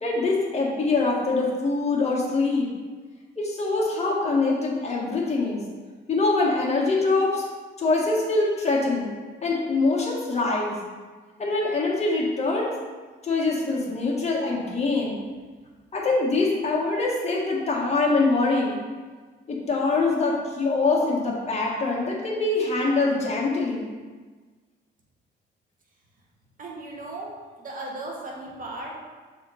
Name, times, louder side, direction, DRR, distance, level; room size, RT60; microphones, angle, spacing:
voice 1, 0.0-2.7 3.4-5.6 6.1-7.5 7.8-9.1 9.4-10.8 11.4-12.7 13.2-15.2 15.9-18.8 19.5-23.9, left 3 dB, 35° left, -4 dB, 1.9 m, -24 dB
voice 2, 26.6-29.0, right 2 dB, 45° right, -3 dB, 1.8 m, -36 dB
6.9 x 4.3 x 4.3 m, 1.4 s
cardioid pair, 90°, 20 cm